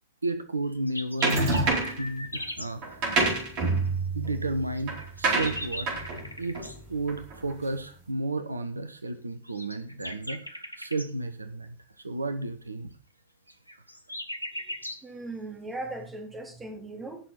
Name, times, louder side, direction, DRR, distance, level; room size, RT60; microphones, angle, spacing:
voice 1, 0.2-1.4 2.0-3.0 3.6-3.8 4.1-5.9 6.4-11.8 12.0-12.9, right 2 dB, 80° right, 11 dB, 0.9 m, -33 dB
sound 1, 0.7-2.7 4.8-6.8 9.5-11.1 13.5-15.0, left 1 dB, 90° left, 1.1 m, -39 dB
sound 2, 1.2-2.1 2.8-7.5, right 3 dB, 45° right, 4.2 m, -28 dB
voice 2, 15.0-17.2, right 2 dB, 15° right, 3 dB, 3.4 m, -38 dB
18.0 x 6.5 x 4.2 m, 0.38 s
figure-of-eight pair, 90°, 0 cm